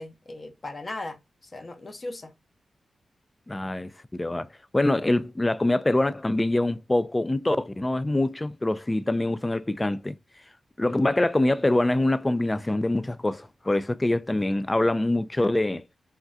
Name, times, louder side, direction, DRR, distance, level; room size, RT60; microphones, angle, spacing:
voice 1, 0.0-2.3, left 2 dB, 45° left, 0.8 m, -38 dB
voice 2, 3.5-4.5 4.7-10.1 10.8-15.8, left 1 dB, 20° left, 0.4 m, -24 dB
3.6 x 2.3 x 2.6 m
cardioid pair, 55°, 0 cm